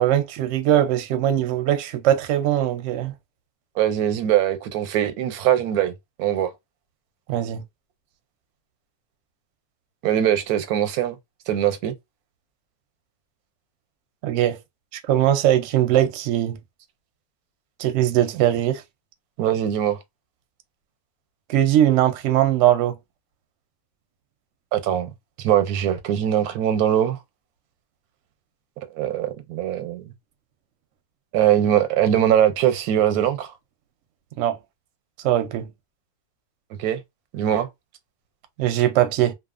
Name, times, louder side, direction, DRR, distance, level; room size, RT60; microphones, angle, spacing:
voice 1, 0.0-3.1 7.3-7.6 14.2-14.6 14.9-16.6 17.8-18.8 21.5-23.0 34.4-34.6 35.2-35.7 38.6-39.3, right 12 dB, 70° right, 0.8 m, -20 dB
voice 2, 3.8-5.9 6.2-6.5 10.0-11.2 11.5-11.9 19.4-20.0 24.7-25.1 25.4-27.2 28.9-30.1 31.3-33.5 36.8-37.0 37.3-37.7, right 10 dB, 90° right, 1.1 m, -21 dB
2.5 x 2.3 x 2.4 m
omnidirectional pair, 1.5 m